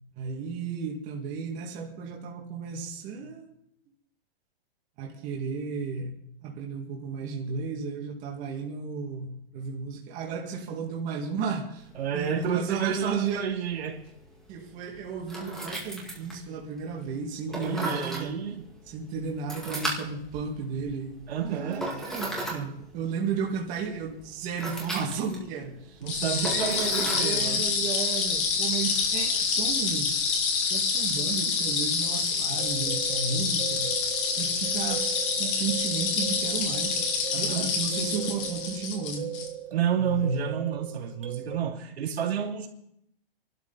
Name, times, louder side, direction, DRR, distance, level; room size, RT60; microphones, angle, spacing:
voice 1, 0.1-3.5 5.0-11.9 12.1-13.5 14.5-18.4 18.9-30.1 30.7-33.9 34.4-35.1 35.4-39.3 40.0-40.6, right 5 dB, 25° right, -1 dB, 2.2 m, -34 dB
sound 1, 11.8-29.3, right 1 dB, ahead, 2.0 m, -39 dB
voice 2, 11.9-14.0 17.5-18.7 21.3-21.9 26.0-27.7 37.3-37.7 39.7-42.7, right 8 dB, 85° right, 0 dB, 3.0 m, -30 dB
sound 2, 26.1-39.5, left 5 dB, 30° left, 2.7 m, -27 dB
sound 3, 32.3-41.6, right 10 dB, 60° right, 2.2 m, -39 dB
25.0 x 12.5 x 4.2 m, 0.74 s
hypercardioid pair, 165°, 31 cm